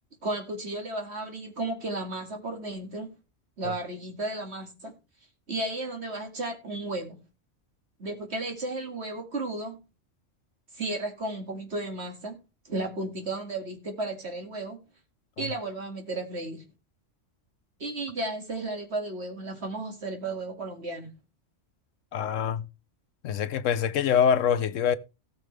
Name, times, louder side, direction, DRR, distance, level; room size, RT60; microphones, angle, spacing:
voice 1, 0.2-3.1 3.6-4.9 5.5-7.2 8.0-9.8 10.7-12.4 12.6-14.8 15.4-16.6 17.8-21.1, right 2 dB, 60° right, 2.6 m, -34 dB
voice 2, 22.1-22.6 23.2-25.0, left 8 dB, 90° left, 1.1 m, -25 dB
18.0 x 6.6 x 3.4 m
omnidirectional pair, 1.3 m